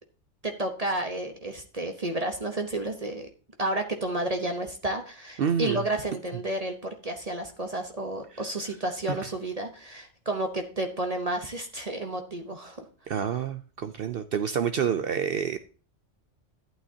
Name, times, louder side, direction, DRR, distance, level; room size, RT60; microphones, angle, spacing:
voice 1, 0.4-3.3 3.6-12.9, right 1 dB, 35° right, 5 dB, 1.0 m, -31 dB
voice 2, 5.4-5.8 9.1-9.2 13.1-15.6, right 7 dB, 60° right, 10 dB, 0.7 m, -28 dB
11.5 x 9.1 x 2.8 m, 0.36 s
omnidirectional pair, 1.2 m